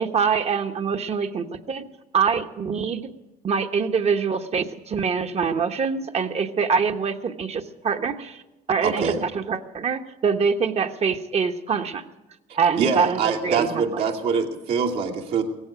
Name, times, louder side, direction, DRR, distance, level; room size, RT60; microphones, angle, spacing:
voice 1, 0.0-1.9 2.1-3.1 3.4-8.4 8.7-12.0 12.5-14.0, right 6 dB, 40° right, 7 dB, 1.1 m, -24 dB
voice 2, 8.8-9.2 12.8-15.4, right 5 dB, 75° right, -2 dB, 2.4 m, -24 dB
17.0 x 15.0 x 5.1 m, 1.0 s
cardioid pair, 110°, 17 cm